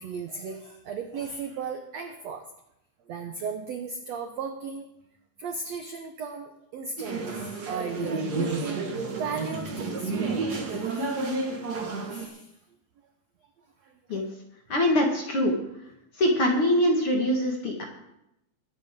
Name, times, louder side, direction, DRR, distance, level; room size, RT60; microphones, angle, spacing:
voice 1, 0.0-2.5 3.1-4.9 5.4-11.2 12.1-12.5 13.8-13.9, right 5 dB, 75° right, 5 dB, 1.6 m, -36 dB
sound 1, 7.0-12.3, right 3 dB, 45° right, 1.3 m, -31 dB
voice 2, 14.7-15.5 16.2-17.8, left 1 dB, 45° left, 0 dB, 2.1 m, -23 dB
22.5 x 9.7 x 3.7 m, 0.80 s
omnidirectional pair, 4.3 m